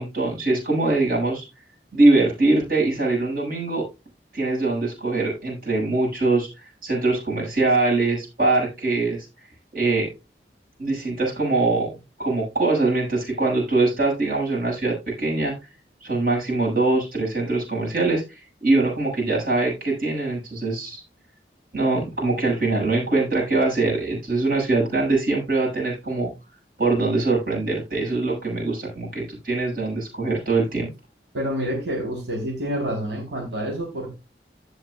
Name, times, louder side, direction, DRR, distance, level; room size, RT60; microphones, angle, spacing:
voice 1, 0.0-1.4 1.9-3.9 4.3-6.5 6.8-9.2 9.7-10.1 10.8-11.9 12.2-15.5 16.0-21.0 21.7-26.3 26.8-30.9, right 2 dB, 55° right, -2 dB, 6.6 m, -22 dB
voice 2, 31.3-34.1, equal, 90° right, -1 dB, 4.0 m, -28 dB
15.5 x 6.4 x 2.4 m, 0.26 s
head